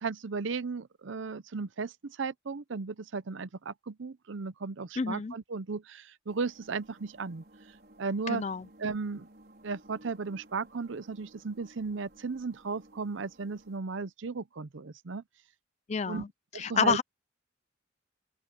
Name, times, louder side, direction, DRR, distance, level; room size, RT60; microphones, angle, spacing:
voice 1, 0.0-7.4 8.0-8.4 8.8-9.3 9.6-15.2 16.1-16.2 16.5-17.0, right 4 dB, 75° right, 0.6 m, -35 dB
voice 2, 5.0-5.3 8.3-8.7 15.9-16.3 16.5-17.0, left 5 dB, 35° left, 0.4 m, -28 dB
sound 1, 6.3-13.8, right 1 dB, 50° right, 5.0 m, -57 dB
open air
head